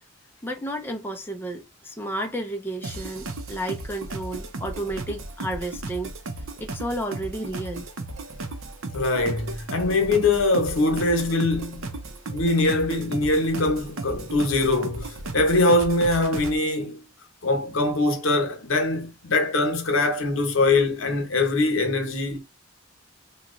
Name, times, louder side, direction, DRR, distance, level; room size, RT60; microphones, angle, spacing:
voice 1, 0.4-6.1 6.6-7.9, right 1 dB, 10° left, 0.5 m, -32 dB
sound 1, 2.8-16.6, right 2 dB, 75° right, 0.7 m, -35 dB
voice 2, 8.9-11.9 12.3-17.0 17.4-22.4, left 2 dB, 70° left, 1.0 m, -22 dB
2.9 x 2.2 x 3.7 m
head